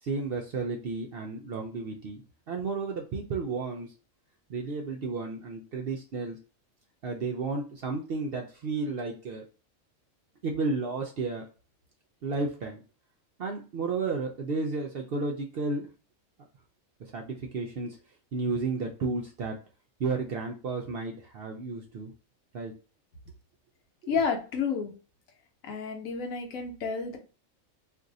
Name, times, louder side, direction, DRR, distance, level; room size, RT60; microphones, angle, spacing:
voice 1, 0.0-2.2 2.5-3.9 4.5-6.4 7.0-9.5 10.4-11.5 12.2-12.8 13.4-15.9 17.1-18.0 18.3-19.6 20.0-22.1 22.5-22.7, right 3 dB, 65° right, 0 dB, 0.6 m, -32 dB
voice 2, 24.1-24.9 25.6-27.2, left 5 dB, 75° left, 3 dB, 1.1 m, -30 dB
2.6 x 2.5 x 3.9 m, 0.36 s
omnidirectional pair, 1.4 m